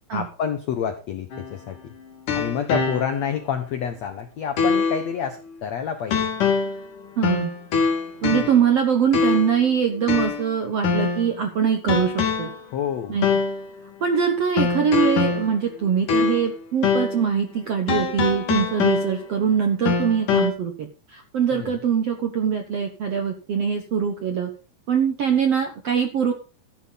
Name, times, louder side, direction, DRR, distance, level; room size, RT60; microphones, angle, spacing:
voice 1, 0.1-1.9 2.3-6.3 8.3-8.5 12.7-13.2 21.5-21.8, left 8 dB, 75° left, 8 dB, 1.5 m, -28 dB
sound 1, 1.3-3.4 3.8-3.9 4.6-5.1 6.1-6.9 7.2-8.7 9.1-9.6 10.1-11.4 11.9-12.6 13.2-13.6 14.6-16.6 16.8-17.2 17.9-19.4 19.9-20.5, left 5 dB, 55° left, 3.6 m, -24 dB
voice 2, 7.2-7.5 8.2-12.5 13.1-13.3 14.0-24.5 24.9-26.3, right 7 dB, 70° right, 5 dB, 1.5 m, -23 dB
14.0 x 11.0 x 4.1 m, 0.32 s
omnidirectional pair, 4.7 m